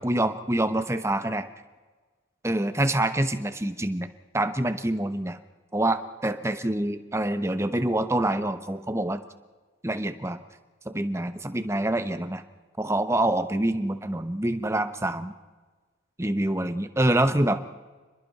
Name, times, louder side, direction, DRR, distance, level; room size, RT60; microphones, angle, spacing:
voice 1, 0.0-1.5 2.4-4.1 4.3-5.4 5.7-9.2 9.8-10.4 10.9-12.4 12.8-15.3 16.2-17.6, right 1 dB, 15° right, 10 dB, 0.9 m, -26 dB
29.5 x 21.0 x 4.2 m, 1.3 s
head